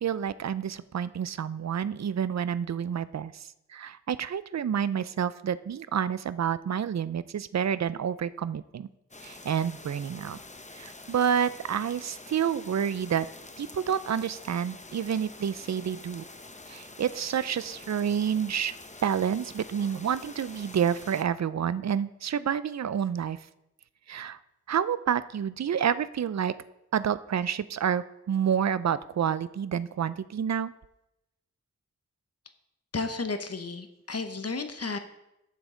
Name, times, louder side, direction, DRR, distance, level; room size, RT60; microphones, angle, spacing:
voice 1, 0.0-8.9 9.2-10.4 10.8-13.3 13.6-16.2 16.7-18.7 19.0-23.4 24.1-24.4 24.7-26.6 26.9-30.7, right 8 dB, 65° right, 15 dB, 0.4 m, -29 dB
sound 1, 9.1-21.2, left 2 dB, 25° left, 0.7 m, -47 dB
voice 2, 32.9-35.0, left 3 dB, 55° left, 8 dB, 1.0 m, -33 dB
12.5 x 7.1 x 3.8 m, 0.88 s
wide cardioid pair, 55°, 29 cm